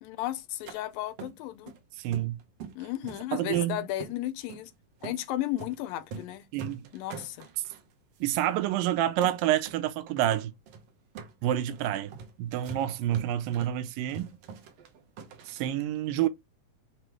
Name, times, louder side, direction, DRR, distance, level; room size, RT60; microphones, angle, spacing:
voice 1, 0.0-1.7 2.8-4.7 5.0-6.5 6.9-7.5, left 14 dB, 85° left, 2.4 m, -34 dB
sound 1, 0.7-0.8 1.2-1.8 2.1-2.8 3.1-4.2 4.5-4.7 5.0-5.2 5.6-5.8 6.0-6.3 6.6-7.8 8.2-8.3 8.6-8.8 9.2-9.8 10.1-15.7, right 5 dB, 65° right, 1.7 m, -43 dB
voice 2, 2.0-2.4 3.3-3.8 6.5-6.9 8.2-10.5 11.4-12.1 12.4-14.3 15.5-16.3, right 12 dB, 85° right, 2.3 m, -28 dB
6.8 x 3.0 x 4.7 m
omnidirectional pair, 4.0 m